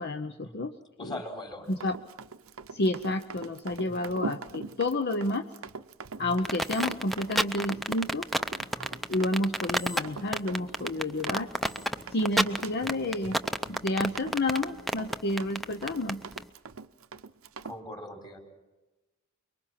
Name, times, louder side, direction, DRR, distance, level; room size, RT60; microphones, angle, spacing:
voice 1, 0.0-1.2 1.7-2.0 2.7-5.4 6.2-8.3 9.1-11.5 12.1-13.4 13.7-16.2, left 1 dB, 50° left, 7 dB, 0.8 m, -30 dB
voice 2, 1.0-1.7 3.9-4.1 6.2-6.3 8.8-9.0 17.6-18.4, left 1 dB, 20° left, 1 dB, 4.3 m, -41 dB
Run, 1.7-17.8, right 4 dB, 75° right, 0.7 m, -43 dB
sound 1, 6.4-16.4, equal, ahead, 0.6 m, -29 dB
24.5 x 23.0 x 5.9 m, 1.1 s
head